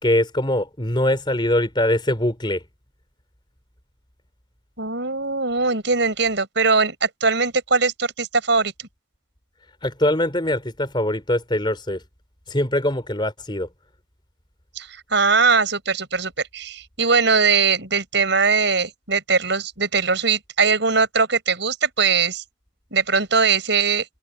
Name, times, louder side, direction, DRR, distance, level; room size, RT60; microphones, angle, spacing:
voice 1, 0.0-2.6 9.8-12.0 12.5-13.7, left 1 dB, 25° left, 4.5 m, -22 dB
voice 2, 4.8-8.7 14.7-22.4 22.9-24.0, right 4 dB, 60° right, 6.7 m, -20 dB
head